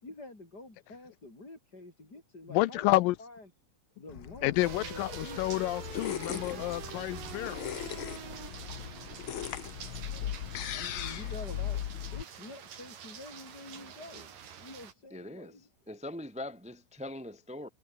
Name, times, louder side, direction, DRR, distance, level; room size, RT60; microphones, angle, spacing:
voice 1, 0.0-2.9 3.2-3.5 4.0-5.6 6.3-6.7 10.0-10.4 10.7-11.8 12.1-15.7, left 2 dB, 25° left, 7.4 m, -48 dB
voice 2, 2.5-3.2 4.4-7.7, left 18 dB, 85° left, 2.4 m, -29 dB
sound 1, 4.1-12.2, left 10 dB, 65° left, 1.3 m, -38 dB
sound 2, 4.6-14.9, right 8 dB, 80° right, 4.4 m, -46 dB
voice 3, 15.1-17.7, left 1 dB, 10° right, 0.4 m, -42 dB
omnidirectional pair, 3.9 m